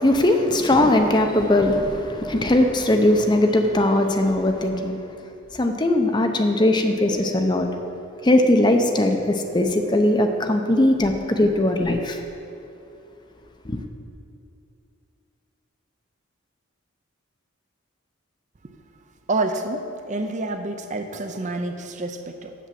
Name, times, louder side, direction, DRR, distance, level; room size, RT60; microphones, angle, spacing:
voice 1, 0.0-5.0 5.5-7.7 8.2-12.2 13.6-13.8, left 1 dB, 20° left, 5 dB, 0.6 m, -19 dB
voice 2, 19.3-22.5, right 2 dB, 35° right, 7 dB, 0.5 m, -28 dB
8.2 x 7.3 x 7.5 m, 2.7 s
head